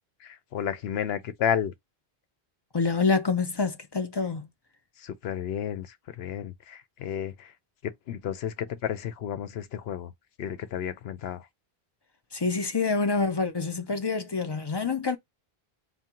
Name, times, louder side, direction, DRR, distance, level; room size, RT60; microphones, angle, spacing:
voice 1, 0.2-1.7 5.0-7.5 7.8-10.1 10.4-11.5, left 9 dB, 75° left, 0.9 m, -32 dB
voice 2, 2.7-4.5 12.3-15.2, left 4 dB, 35° left, 0.4 m, -27 dB
4.4 x 2.2 x 3.7 m
omnidirectional pair, 1.1 m